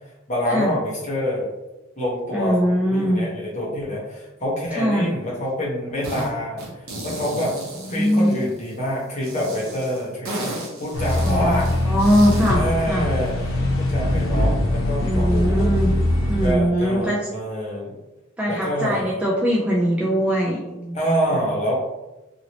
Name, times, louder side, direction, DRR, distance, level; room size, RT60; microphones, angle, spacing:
voice 1, 0.3-1.5 2.0-6.6 7.0-7.5 7.9-10.5 10.8-11.7 12.5-13.3 13.8-15.7 16.4-17.9 18.5-19.1 20.9-21.7, equal, 35° left, -5 dB, 0.9 m, -26 dB
voice 2, 2.3-3.3 4.7-5.1 7.8-8.3 11.2-13.1 15.0-15.9 16.3-17.2 18.4-21.0 21.3-21.4, equal, 5° right, -5 dB, 0.3 m, -21 dB
sound 1, 6.0-6.3 6.6-8.7 9.2-12.6, right 1 dB, 80° right, 1.0 m, -34 dB
sound 2, 10.9-16.5, left 1 dB, 85° left, 0.8 m, -22 dB
2.9 x 2.8 x 2.8 m, 1.0 s
head